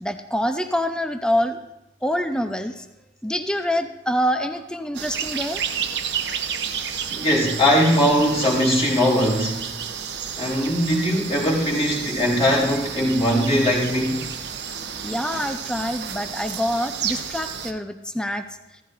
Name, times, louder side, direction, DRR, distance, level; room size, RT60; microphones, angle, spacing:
voice 1, 0.0-1.6 2.0-2.8 3.2-5.6 15.0-18.4, equal, 5° left, 7 dB, 0.6 m, -25 dB
sound 1, 4.9-17.7, right 7 dB, 65° right, 1.0 m, -31 dB
voice 2, 7.1-9.6 10.4-14.3, equal, 30° left, -10 dB, 3.7 m, -20 dB
15.5 x 14.5 x 2.6 m, 0.95 s
head